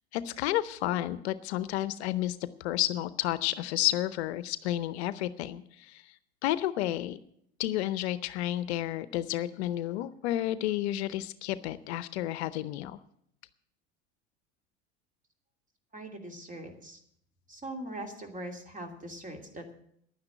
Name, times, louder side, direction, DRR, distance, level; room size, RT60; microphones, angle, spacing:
voice 1, 0.1-6.1 6.4-7.2 7.6-13.0, left 14 dB, 65° left, 15 dB, 0.7 m, -31 dB
voice 2, 15.9-17.0 17.5-19.7, right 1 dB, 20° right, 4 dB, 2.8 m, -41 dB
11.0 x 9.6 x 7.9 m, 0.69 s
hypercardioid pair, 80°, 35 cm